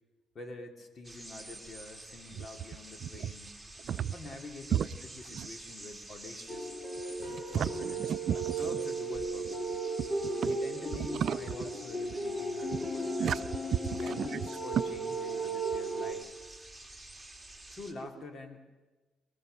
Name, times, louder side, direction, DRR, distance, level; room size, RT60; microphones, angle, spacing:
voice 1, 0.3-3.5 4.1-4.9 5.3-6.7 7.5-8.1 8.6-9.8 10.5-13.5 14.0-16.2 17.7-18.6, left 2 dB, 45° left, 4 dB, 3.3 m, -46 dB
sound 1, 1.0-17.9, right 2 dB, 5° right, 2.6 m, -49 dB
voice 2, 3.0-3.3 3.8-4.1 4.7-4.9 5.3-5.5 7.2-8.8 10.0-10.6 10.9-11.4 12.7-12.9 13.2-13.4 13.9-14.4, right 9 dB, 65° right, 15 dB, 0.6 m, -34 dB
sound 2, 6.5-16.1, right 2 dB, 30° left, 3.4 m, -35 dB
24.0 x 19.5 x 6.9 m, 1.2 s
cardioid pair, 90°, 0 cm